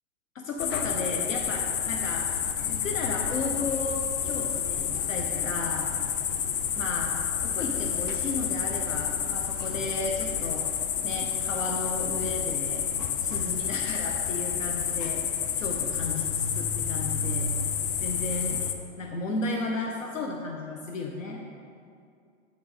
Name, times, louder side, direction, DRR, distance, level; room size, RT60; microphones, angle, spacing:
voice 1, 0.3-2.3 2.6-5.8 6.8-10.6 11.0-12.8 13.2-15.2 15.6-17.5 18.0-18.6 19.0-21.4, left 2 dB, 75° left, 1 dB, 0.9 m, -34 dB
sound 1, 0.6-18.7, left 8 dB, 40° left, 0.6 m, -29 dB
7.7 x 5.9 x 4.1 m, 2.3 s
figure-of-eight pair, 105°, 40 cm